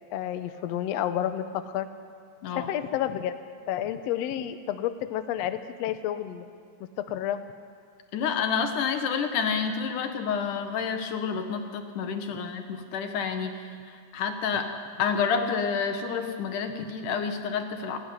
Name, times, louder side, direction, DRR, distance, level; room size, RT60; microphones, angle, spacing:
voice 1, 0.1-1.9 2.5-3.3 3.7-6.5 7.0-7.4 16.8-16.9, left 11 dB, 70° left, 10 dB, 1.8 m, -30 dB
voice 2, 8.1-13.6 13.9-14.7 15.0-18.0, left 6 dB, 85° left, 6 dB, 3.0 m, -29 dB
18.5 x 17.5 x 9.6 m, 2.1 s
omnidirectional pair, 3.5 m